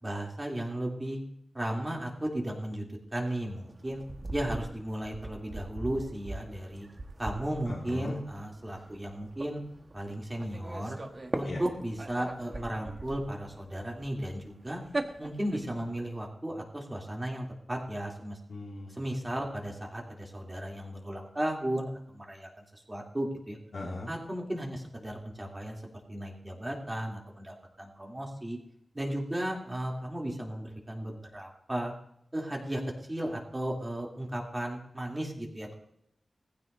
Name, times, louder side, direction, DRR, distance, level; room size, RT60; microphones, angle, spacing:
voice 1, 0.0-1.2 1.5-4.0 4.3-6.9 7.2-9.6 9.9-11.0 11.3-14.8 15.2-18.4 18.9-23.6 24.1-25.8 26.1-28.6 28.9-31.9 32.3-35.7, right 1 dB, 20° right, -1 dB, 3.1 m, -35 dB
sound 1, 3.4-16.0, right 2 dB, 40° right, 1.5 m, -41 dB
voice 2, 7.7-8.2 11.5-11.6 18.5-18.9 23.7-24.1, left 2 dB, 75° left, -4 dB, 2.4 m, -38 dB
20.0 x 15.0 x 2.7 m, 0.72 s
wide cardioid pair, 95°, 0 cm